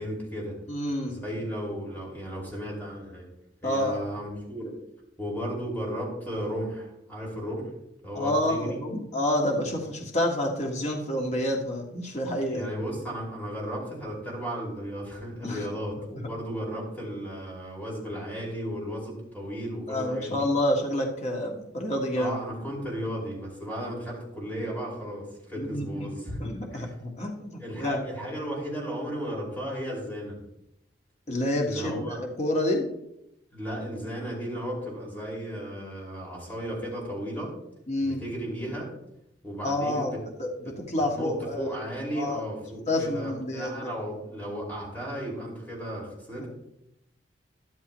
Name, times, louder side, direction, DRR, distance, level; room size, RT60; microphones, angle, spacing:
voice 1, 0.0-0.6 1.1-3.3 3.6-4.7 5.2-7.7 8.0-8.8 9.8-10.0 12.5-20.4 22.1-26.9 27.6-30.4 31.6-32.2 33.5-37.5 38.0-38.9 39.4-40.2 40.5-40.6 41.1-46.5, equal, 10° left, -3 dB, 5.3 m, -35 dB
voice 2, 0.7-1.2 3.6-4.0 8.1-12.7 15.4-15.7 19.9-22.3 25.6-26.1 26.4-28.0 31.3-32.1 32.4-32.9 37.9-38.2 39.6-40.1 40.4-40.5 40.8-41.7 42.1-42.4 42.9-43.9 46.4-46.5, left 1 dB, 40° left, 0 dB, 1.7 m, -28 dB
13.0 x 12.0 x 3.1 m, 0.83 s
head